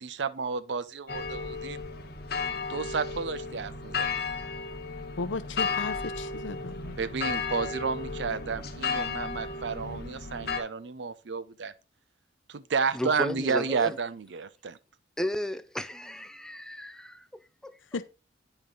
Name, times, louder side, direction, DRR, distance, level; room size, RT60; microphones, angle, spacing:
voice 1, 0.0-1.8 2.5-4.1 7.0-11.7 12.5-14.8, right 5 dB, 70° right, 0.5 m, -31 dB
sound 1, 1.1-10.6, left 4 dB, 55° left, 1.1 m, -34 dB
voice 2, 5.2-7.0 17.9-18.0, left 3 dB, 90° left, 0.7 m, -35 dB
voice 3, 12.9-14.0 15.2-18.0, equal, 5° left, 0.4 m, -34 dB
9.0 x 5.2 x 3.8 m
head